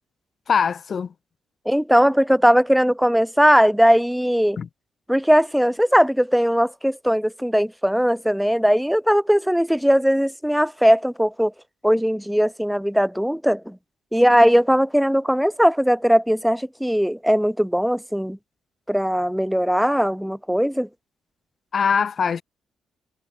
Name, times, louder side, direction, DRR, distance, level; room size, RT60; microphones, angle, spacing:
voice 1, 0.5-1.1 4.6-4.7 21.7-22.4, left 6 dB, 45° left, 6.9 m, -22 dB
voice 2, 1.6-4.6 5.1-11.5 11.8-13.8 14.1-18.4 18.9-20.9, equal, ahead, 4.6 m, -19 dB
cardioid pair, 90°, 0 cm